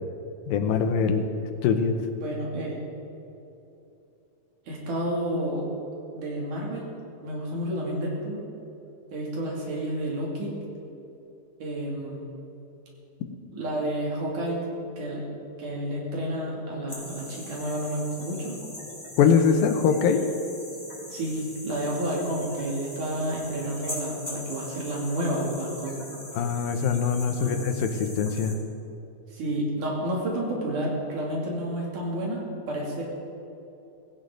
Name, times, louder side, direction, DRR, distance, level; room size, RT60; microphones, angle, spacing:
voice 1, 0.5-1.2 1.6-2.0 19.2-20.2 26.3-28.6, left 6 dB, 80° left, 7 dB, 2.7 m, -22 dB
voice 2, 2.1-2.8 4.7-5.7 6.1-6.9 7.2-8.4 9.1-10.5 11.6-12.3 13.5-14.6 15.0-15.2 15.6-18.6 21.1-26.0 27.3-27.5 29.3-32.4 32.7-33.0, right 1 dB, 60° right, -3 dB, 4.1 m, -30 dB
sound 1, 16.9-28.5, left 1 dB, 10° left, 2.7 m, -41 dB
17.5 x 17.0 x 3.9 m, 2.9 s
omnidirectional pair, 4.1 m